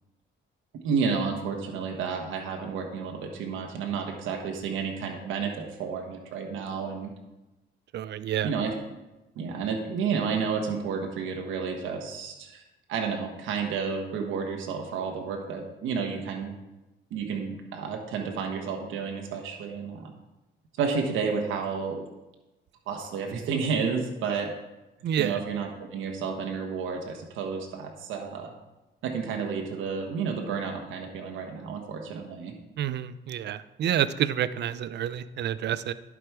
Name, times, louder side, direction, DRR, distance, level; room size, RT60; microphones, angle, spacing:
voice 1, 0.8-7.1 8.4-8.7 9.3-12.6 12.9-16.5 17.1-20.1 20.8-22.1 22.9-24.5 25.2-28.5 29.0-32.5, right 5 dB, 85° right, 3 dB, 1.2 m, -31 dB
voice 2, 7.9-8.5 25.0-25.4 32.8-35.9, right 10 dB, 60° right, 15 dB, 0.5 m, -28 dB
11.0 x 5.1 x 4.7 m, 1.0 s
cardioid pair, 90°, 20 cm